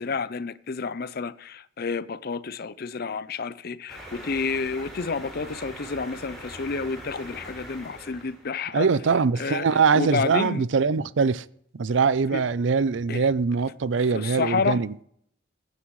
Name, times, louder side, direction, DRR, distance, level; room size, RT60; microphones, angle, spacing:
voice 1, 0.0-8.9 9.4-9.7 9.9-10.6 12.3-12.5 13.1-13.3 14.1-14.8, left 4 dB, 55° left, 0.6 m, -30 dB
sound 1, 3.9-8.5, equal, ahead, 5.4 m, -42 dB
voice 2, 8.7-11.5 11.7-14.9, right 5 dB, 85° right, 0.5 m, -22 dB
21.5 x 9.8 x 3.2 m
head